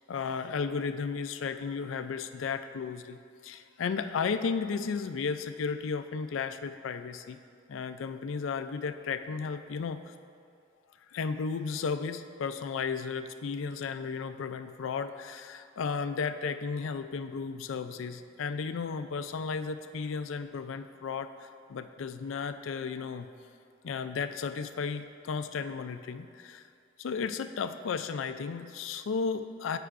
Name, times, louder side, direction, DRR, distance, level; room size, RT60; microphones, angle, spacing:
voice 1, 0.1-3.2 3.4-7.4 7.7-10.1 11.1-23.3 23.8-26.7 27.0-29.8, left 5 dB, 70° left, 10 dB, 0.4 m, -34 dB
16.0 x 5.6 x 2.5 m, 2.3 s
head